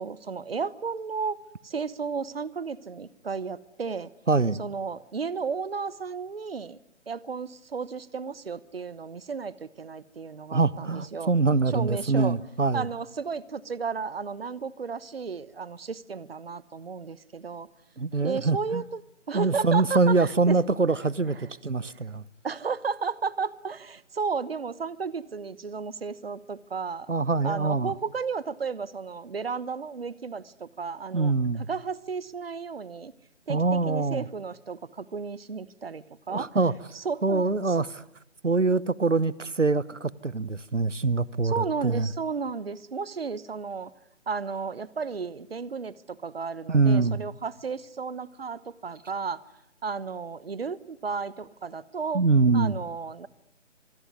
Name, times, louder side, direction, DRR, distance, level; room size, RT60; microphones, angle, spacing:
voice 1, 0.0-1.4 1.6-4.1 4.6-6.8 7.1-11.3 11.7-12.3 12.7-17.7 18.2-19.0 19.3-20.6 21.3-21.5 22.4-27.1 27.4-33.1 33.5-36.5 36.9-37.9 41.4-43.9 44.3-49.4 49.8-52.2 52.5-53.3, right 5 dB, 55° right, 1.2 m, -33 dB
voice 2, 4.3-4.6 10.5-12.8 18.0-18.8 19.3-21.4 21.6-22.2 27.1-27.9 31.1-31.7 33.5-34.2 36.3-36.7 37.2-38.0 38.4-42.1 46.7-47.2 52.1-52.7, right 3 dB, 85° right, 1.2 m, -24 dB
26.0 x 21.5 x 9.5 m
figure-of-eight pair, 155°, 36 cm